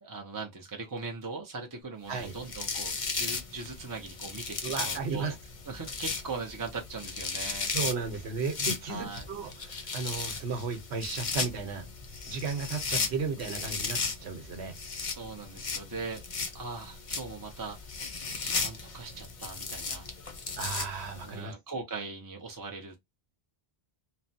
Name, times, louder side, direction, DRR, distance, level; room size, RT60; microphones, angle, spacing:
voice 1, 0.0-5.4 5.7-7.7 8.9-9.3 15.1-16.2 16.5-17.8 18.4-20.1 21.3-23.0, right 4 dB, 30° right, 0.4 m, -40 dB
sound 1, 2.1-21.3, left 4 dB, 40° left, 0.6 m, -36 dB
voice 2, 4.6-5.3 7.7-11.9 12.3-14.8 20.6-21.5, right 5 dB, 85° right, 1.1 m, -34 dB
3.1 x 2.1 x 2.6 m
omnidirectional pair, 1.1 m